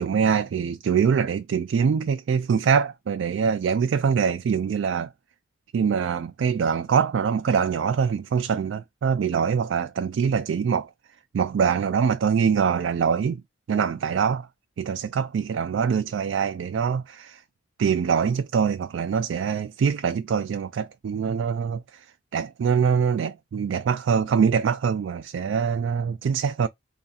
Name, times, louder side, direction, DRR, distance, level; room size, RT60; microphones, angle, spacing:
voice 1, 0.0-5.1 5.7-10.9 11.3-13.4 13.7-14.5 14.8-17.4 17.8-22.1 22.3-26.7, right 6 dB, 80° right, 0.3 m, -24 dB
3.2 x 2.4 x 4.1 m
head